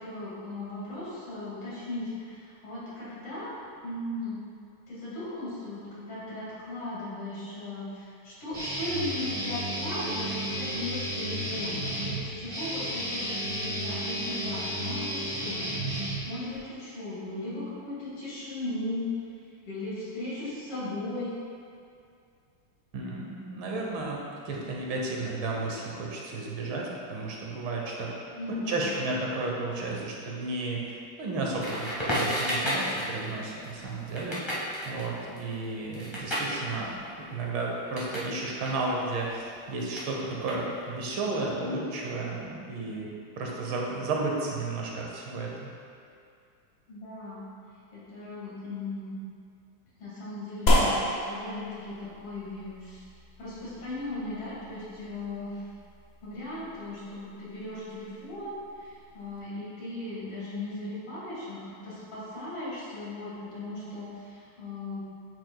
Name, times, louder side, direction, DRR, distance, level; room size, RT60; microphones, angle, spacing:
voice 1, 0.0-3.5 3.8-4.4 4.9-19.1 19.7-21.3 28.3-28.9 46.9-47.5 47.9-49.2 50.0-50.9 51.2-53.1 53.4-55.6 56.2-65.0, left 2 dB, 90° left, -9 dB, 2.7 m, -37 dB
Guitar, 8.5-16.6, right 1 dB, 15° right, 1.2 m, -33 dB
voice 2, 22.9-28.1 28.5-30.8 31.2-34.5 34.9-43.1 43.4-45.7, right 2 dB, 70° right, -2 dB, 1.6 m, -33 dB
Crackle, 31.6-38.3 38.6-41.0, equal, 15° left, 1.1 m, -33 dB
sound 1, 50.7-59.4, left 1 dB, 70° left, 0.6 m, -32 dB
8.7 x 6.0 x 2.2 m, 2.4 s
omnidirectional pair, 2.4 m